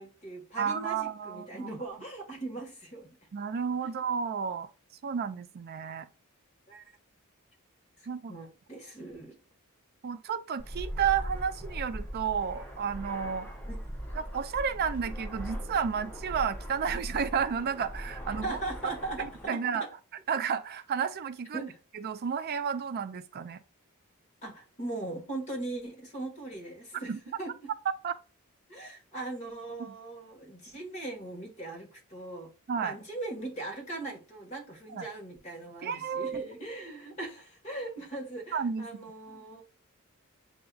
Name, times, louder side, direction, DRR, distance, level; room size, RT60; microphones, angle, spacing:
voice 1, 0.0-3.1 3.8-3.9 6.7-6.8 8.3-9.3 13.7-13.8 18.4-19.9 21.5-21.8 24.4-27.5 28.7-32.5 32.8-39.6, right 2 dB, 30° left, 1.6 m, -39 dB
voice 2, 0.6-1.7 3.3-4.7 5.0-6.1 8.1-8.4 10.0-13.5 14.1-18.6 19.2-19.8 20.3-21.7 21.9-23.6 27.1-27.2 28.0-28.1 29.8-30.0 32.7-33.0 34.9-35.1 35.8-36.5 38.5-39.0, right 7 dB, 45° right, 0.3 m, -32 dB
Fixed-wing aircraft airplane, 10.6-19.4, equal, 10° left, 0.8 m, -39 dB
7.7 x 2.6 x 2.4 m
head